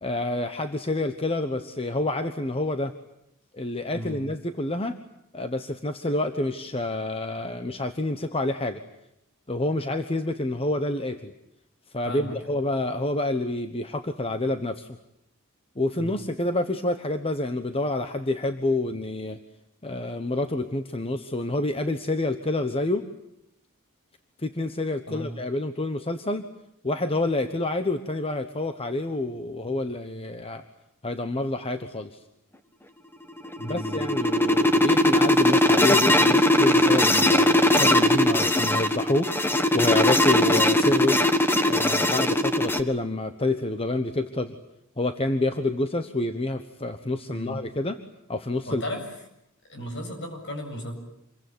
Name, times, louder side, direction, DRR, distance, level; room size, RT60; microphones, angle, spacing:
voice 1, 0.0-2.9 3.5-5.0 5.3-8.8 9.5-11.3 11.9-15.0 15.8-19.4 19.8-23.0 24.4-26.5 26.8-30.6 31.0-32.2 33.6-41.2 41.7-44.6 45.0-48.0 48.3-48.8, left 2 dB, 25° left, 8 dB, 1.2 m, -28 dB
voice 2, 3.9-4.3 12.0-12.5 16.0-16.1 25.1-25.3 33.6-34.1 47.3-47.5 48.7-49.0 49.7-50.9, left 1 dB, 60° left, 4 dB, 7.7 m, -35 dB
sound 1, 33.4-42.8, left 1 dB, 10° left, 1.6 m, -20 dB
27.5 x 23.0 x 9.6 m, 0.80 s
head